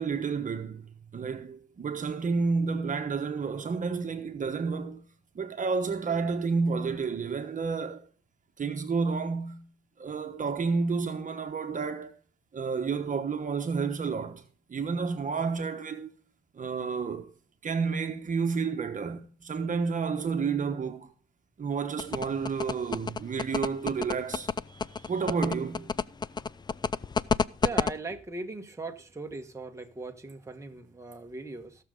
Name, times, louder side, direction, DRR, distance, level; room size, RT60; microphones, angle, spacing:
voice 1, 0.0-5.0 5.3-8.0 8.6-9.7 10.0-12.1 12.5-14.4 14.7-16.1 16.6-17.3 17.6-21.1 21.6-25.9, right 5 dB, 40° right, 1.2 m, -30 dB
sound 1, 22.0-27.9, left 5 dB, 20° left, 0.4 m, -28 dB
voice 2, 27.6-31.8, right 3 dB, 15° right, 1.3 m, -39 dB
17.0 x 6.7 x 3.8 m
cardioid pair, 90°, 20 cm